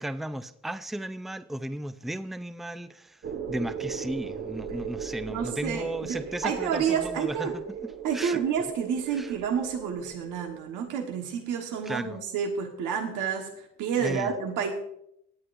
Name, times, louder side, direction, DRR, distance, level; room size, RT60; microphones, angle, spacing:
voice 1, 0.0-7.6 8.1-8.4 9.2-9.3 11.9-12.2 14.0-14.3, right 1 dB, ahead, 11 dB, 0.5 m, -35 dB
sound 1, 3.2-11.0, right 7 dB, 45° right, 0.9 m, -38 dB
voice 2, 5.3-7.5 8.0-14.7, right 7 dB, 90° right, 3 dB, 1.5 m, -29 dB
16.5 x 9.5 x 2.6 m, 0.76 s
cardioid pair, 90°, 30 cm